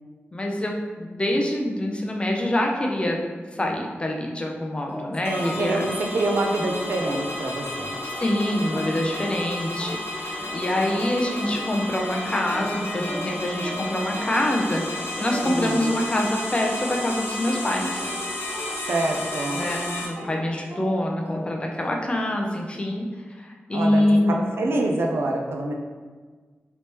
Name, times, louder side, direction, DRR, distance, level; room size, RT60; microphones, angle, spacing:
voice 1, 0.3-3.2 3.5-5.8 8.0-18.0 19.5-23.1 23.4-24.5, left 1 dB, 25° left, 1 dB, 0.5 m, -25 dB
sound 1, 4.9-7.8 8.2-16.5 16.9-22.3, equal, 40° right, 1.1 m, -40 dB
sound 2, 5.2-20.1, left 1 dB, 70° left, 0.7 m, -32 dB
voice 2, 5.3-8.0 15.4-15.8 18.9-19.6 23.7-25.7, right 2 dB, 75° right, 1 dB, 0.5 m, -26 dB
3.3 x 3.0 x 2.9 m, 1.5 s
wide cardioid pair, 110°, 4 cm